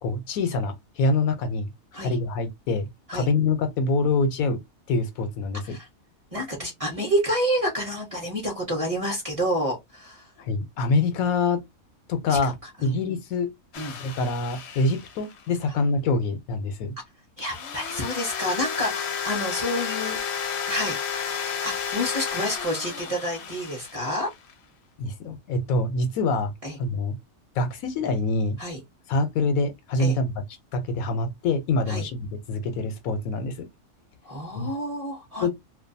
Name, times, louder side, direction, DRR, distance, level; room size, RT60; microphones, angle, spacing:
voice 1, 0.0-1.7 2.0-2.9 3.1-4.6 4.9-5.8 10.4-11.6 12.1-12.6 12.8-13.5 14.0-16.9 25.0-26.5 26.8-27.1 27.6-28.6 29.1-30.3 30.7-33.7 34.5-34.7 35.4-35.5, left 3 dB, 85° left, 1.1 m, -25 dB
voice 2, 6.3-10.3 12.3-12.5 12.8-13.0 13.8-14.0 17.4-20.2 20.7-21.0 21.6-24.3 26.6-26.8 28.6-28.8 30.0-30.2 31.9-32.1 34.2-35.5, equal, 35° right, 0.7 m, -29 dB
sound 1, 13.7-15.6 17.4-24.5, left 7 dB, 60° left, 0.8 m, -32 dB
2.5 x 2.3 x 2.6 m
omnidirectional pair, 1.4 m